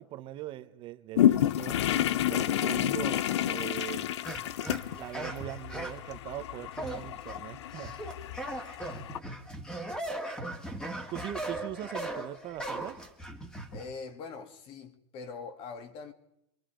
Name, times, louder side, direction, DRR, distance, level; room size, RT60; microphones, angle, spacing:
voice 1, 0.0-1.8 2.3-4.1 4.9-8.0 11.1-13.0, right 14 dB, 35° right, 1.1 m, -41 dB
sound 1, 1.2-9.2, left 12 dB, 85° left, 0.8 m, -30 dB
sound 2, 4.2-6.1 6.7-7.4 7.7-13.9, right 1 dB, 5° left, 2.1 m, -38 dB
voice 2, 13.7-16.1, left 4 dB, 40° left, 2.1 m, -42 dB
26.0 x 22.5 x 5.2 m
supercardioid pair, 140°, 14 cm